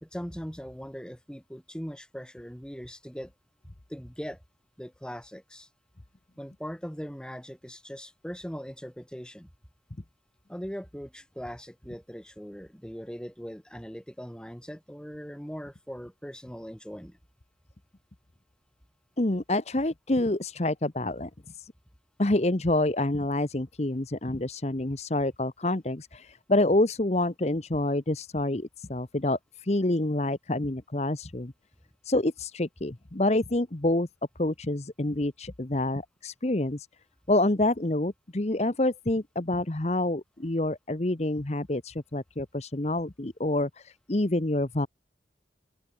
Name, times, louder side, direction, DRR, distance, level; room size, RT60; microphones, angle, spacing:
voice 1, 0.0-3.3 3.9-4.4 4.8-5.7 6.4-9.5 10.5-17.2, equal, 5° left, 2.6 m, -40 dB
voice 2, 19.2-21.3 21.6-21.7 22.2-31.5 32.0-34.1 34.4-36.9 37.3-44.9, left 1 dB, 40° left, 1.1 m, -27 dB
open air
head